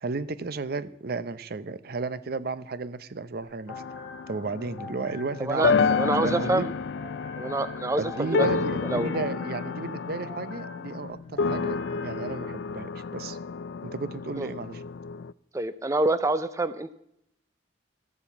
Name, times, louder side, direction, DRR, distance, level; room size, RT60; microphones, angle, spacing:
voice 1, 0.0-3.8 4.3-5.9 6.2-6.7 8.0-13.4 13.8-14.8, right 3 dB, 55° right, 15 dB, 0.7 m, -33 dB
sound 1, 3.4-6.7 7.0-11.0 11.3-12.1, left 3 dB, 10° left, 3.3 m, -46 dB
sound 2, 3.7-15.3, left 5 dB, 70° left, 0.4 m, -30 dB
voice 2, 5.4-6.7 7.4-9.1 14.4-14.5 15.5-16.9, right 2 dB, 15° right, 12 dB, 0.5 m, -27 dB
13.5 x 7.2 x 8.0 m, 0.75 s
head